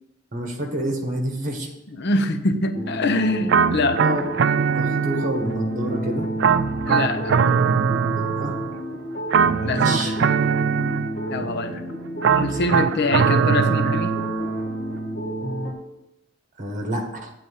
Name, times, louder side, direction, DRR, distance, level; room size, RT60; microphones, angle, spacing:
voice 1, 0.3-1.7 4.0-4.2 4.7-6.3 8.2-8.6 9.5-10.2 12.5-12.8 16.6-17.3, right 1 dB, 45° right, 3 dB, 1.4 m, -28 dB
voice 2, 2.0-4.0 6.8-7.6 9.6-10.2 11.3-11.8 12.3-14.2, left 2 dB, 60° left, 9 dB, 0.7 m, -24 dB
sound 1, 2.7-15.7, right 1 dB, 40° left, 1.8 m, -30 dB
sound 2, 3.5-5.6 6.4-8.8 9.3-11.4 12.2-14.6, right 6 dB, 65° right, 0.4 m, -21 dB
8.7 x 3.9 x 7.1 m, 0.87 s
head